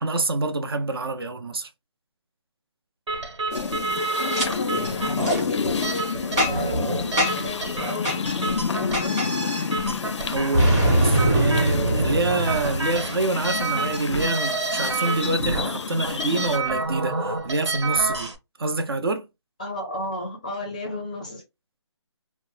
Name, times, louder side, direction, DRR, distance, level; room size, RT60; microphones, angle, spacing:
voice 1, 0.0-1.7 10.3-18.3 18.6-19.3, right 2 dB, 55° right, 0.5 m, -26 dB
sound 1, 3.1-18.4, right 3 dB, 75° right, 1.2 m, -29 dB
sound 2, 3.5-16.6, left 6 dB, 75° left, 0.4 m, -30 dB
voice 2, 4.2-9.2 19.6-21.4, left 1 dB, 15° left, 0.5 m, -34 dB
Boom, 4.3-4.5 5.2-5.4 6.4-6.8 7.2-7.5 8.0-8.2 8.9-9.3 10.5-13.2, right 1 dB, 10° right, 0.8 m, -22 dB
3.1 x 2.0 x 3.1 m
hypercardioid pair, 175°, 15 cm